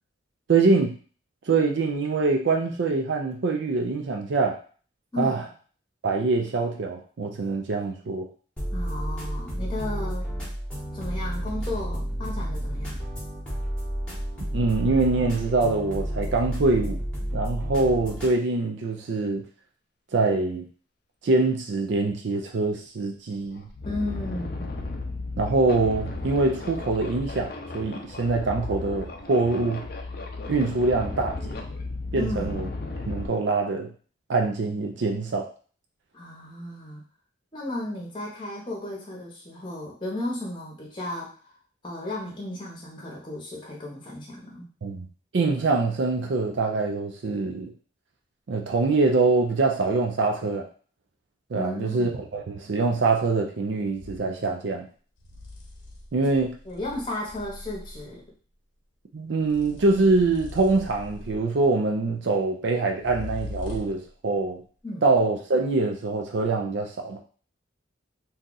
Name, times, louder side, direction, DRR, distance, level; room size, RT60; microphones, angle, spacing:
voice 1, 0.5-0.9 1.5-4.6 5.2-5.4 6.0-8.3 14.5-17.0 17.3-19.4 20.1-20.6 21.2-23.7 25.4-29.8 30.5-31.5 32.1-32.7 33.1-33.9 34.3-35.5 44.8-45.1 45.3-47.7 48.5-50.7 51.5-54.9 56.1-56.5 59.1-64.6 65.0-67.2, right 3 dB, 65° right, 2 dB, 0.4 m, -24 dB
sound 1, 8.6-18.3, equal, 5° left, 1.0 m, -31 dB
voice 2, 8.7-10.3 10.9-13.0 23.8-24.7 32.1-32.6 36.1-37.0 37.5-41.3 41.8-44.7 51.5-52.1 56.6-58.2 64.8-65.1, left 1 dB, 25° left, -3 dB, 0.9 m, -34 dB
sound 2, 22.9-23.0 23.4-33.3, left 2 dB, 50° left, 0.5 m, -34 dB
sound 3, 53.9-54.3 55.2-58.2 59.4-61.6 63.0-64.1, left 2 dB, 75° left, 0.8 m, -41 dB
2.7 x 2.3 x 3.8 m, 0.41 s
head